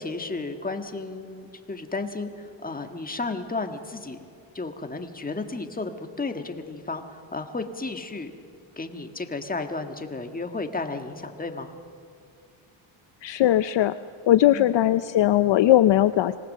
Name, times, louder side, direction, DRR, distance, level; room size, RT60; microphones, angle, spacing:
voice 1, 0.0-4.2 4.5-8.3 8.8-11.7 14.5-14.7, left 3 dB, 15° left, 6 dB, 1.6 m, -33 dB
voice 2, 13.2-14.0 14.3-16.4, left 13 dB, 60° left, 13 dB, 0.6 m, -19 dB
25.5 x 19.0 x 6.6 m, 2.5 s
cardioid pair, 95°, 49 cm